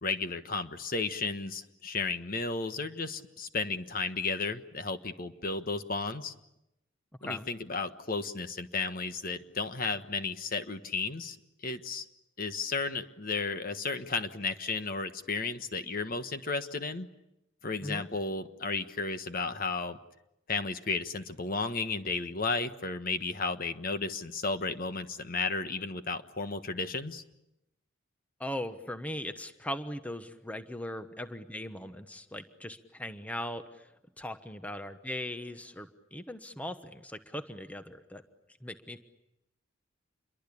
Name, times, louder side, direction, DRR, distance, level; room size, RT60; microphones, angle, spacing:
voice 1, 0.0-6.3 7.2-11.4 11.6-12.1 12.4-17.1 17.6-20.0 20.5-27.2, left 4 dB, 45° left, 9 dB, 1.4 m, -33 dB
voice 2, 28.4-33.9 34.2-38.2 38.6-39.0, left 1 dB, 5° left, 9 dB, 1.1 m, -39 dB
28.0 x 23.0 x 8.6 m, 0.87 s
head